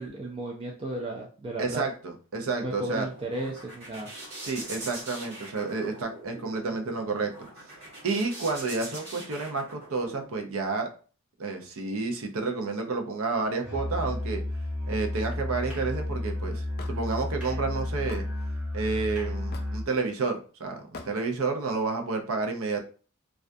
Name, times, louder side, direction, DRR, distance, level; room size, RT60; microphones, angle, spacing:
voice 1, 0.0-1.8 2.5-4.1, right 1 dB, 25° right, -1 dB, 0.3 m, -34 dB
voice 2, 1.6-3.1 4.4-7.5 8.0-10.9 11.4-14.4 14.9-18.3 18.7-22.8, right 4 dB, 75° right, 4 dB, 0.5 m, -30 dB
sound 1, 2.9-10.5, right 2 dB, 50° right, 1.2 m, -43 dB
Musical instrument, 13.6-19.9, left 1 dB, 5° right, 0.7 m, -32 dB
Hammer / Wood, 16.8-17.0 18.1-18.3 19.5-19.8 20.9-21.1, left 3 dB, 45° left, 0.4 m, -41 dB
2.3 x 2.2 x 2.5 m, 0.38 s
head